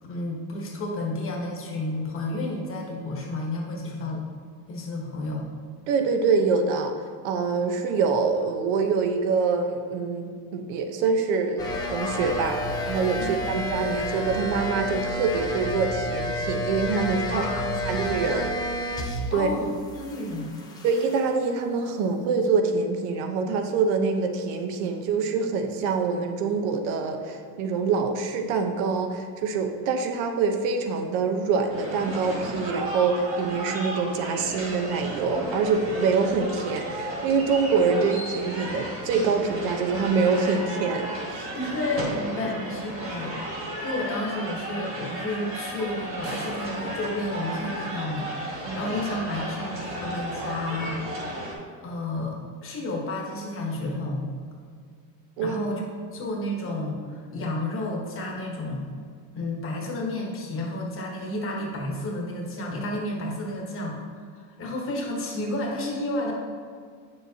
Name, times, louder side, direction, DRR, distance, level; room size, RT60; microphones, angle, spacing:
voice 1, 0.0-4.2 4.7-5.5 13.2-13.6 17.3-18.3 19.3-20.6 41.5-43.4 43.8-51.0 51.8-54.2 55.4-55.8 56.1-58.9 59.3-64.0 64.3-66.3, left 1 dB, 25° left, -1 dB, 1.1 m, -31 dB
voice 2, 5.9-6.9 7.2-17.5 17.9-18.5 19.3-19.5 20.8-41.5 48.7-48.9 55.4-55.6, right 5 dB, 75° right, 5 dB, 1.0 m, -25 dB
sound 1, 11.6-19.5 19.7-21.3, left 1 dB, 10° left, 0.3 m, -30 dB
sound 2, 31.7-51.5, right 1 dB, 25° right, 1.9 m, -34 dB
sound 3, 46.2-48.4, right 1 dB, 50° right, 1.8 m, -43 dB
8.8 x 6.9 x 2.8 m, 2.1 s
cardioid pair, 165°, 48 cm